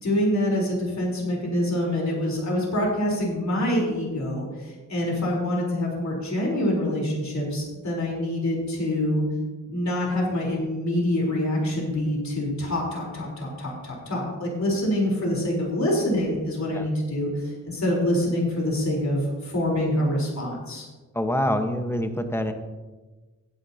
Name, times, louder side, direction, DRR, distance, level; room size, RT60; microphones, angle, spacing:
voice 1, 0.0-9.2 9.7-20.9, left 1 dB, 60° left, -2 dB, 3.6 m, -26 dB
voice 2, 21.1-22.5, equal, 10° left, 6 dB, 1.1 m, -25 dB
16.0 x 9.6 x 2.8 m, 1.3 s
cardioid pair, 75°, 32 cm